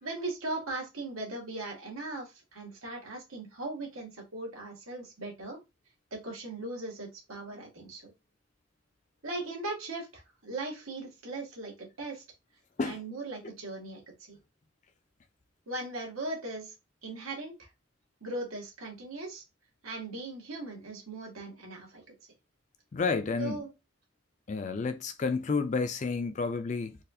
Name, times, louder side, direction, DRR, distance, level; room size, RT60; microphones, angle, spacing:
voice 1, 0.0-5.6 6.1-8.1 9.2-12.2 12.8-14.4 15.7-16.7 17.0-17.7 18.2-19.4 19.8-22.0 23.4-23.7, right 2 dB, 90° right, 1.5 m, -39 dB
voice 2, 22.9-23.6 24.5-27.0, left 4 dB, 35° left, 0.3 m, -30 dB
4.1 x 2.4 x 2.6 m
head